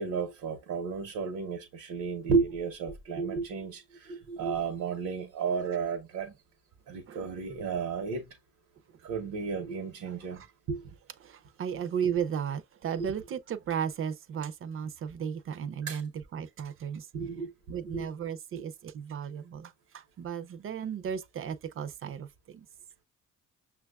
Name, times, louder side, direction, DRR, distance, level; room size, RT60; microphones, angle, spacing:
voice 1, 0.0-6.4 6.9-8.3 9.0-10.4 10.7-10.9 13.0-13.1 15.8-16.0 17.1-18.0, right 5 dB, 80° right, 0.9 m, -33 dB
voice 2, 7.1-7.4 10.0-10.5 11.2-17.1 17.7-22.7, right 8 dB, 45° right, 0.5 m, -35 dB
5.9 x 2.3 x 2.3 m
cardioid pair, 90°, 30 cm